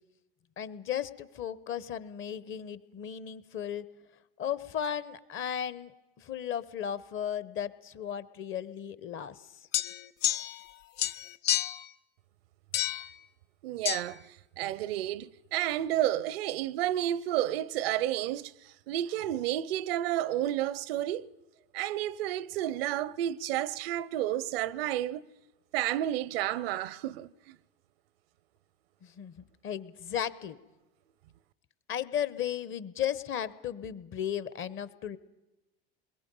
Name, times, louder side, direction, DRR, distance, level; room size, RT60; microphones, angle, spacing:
voice 1, 0.6-3.9 4.4-5.9 6.2-9.5 29.0-30.6 31.9-35.2, left 9 dB, 40° left, 1.0 m, -35 dB
sound 1, 9.7-10.7 11.0-11.9 12.7-13.1 13.8-14.0, left 12 dB, 85° left, 0.7 m, -30 dB
voice 2, 13.6-14.2 14.6-18.5 18.9-21.3 21.7-25.3 25.7-27.6, right 13 dB, 75° right, 0.7 m, -31 dB
28.0 x 22.0 x 5.4 m
hypercardioid pair, 95°, 30 cm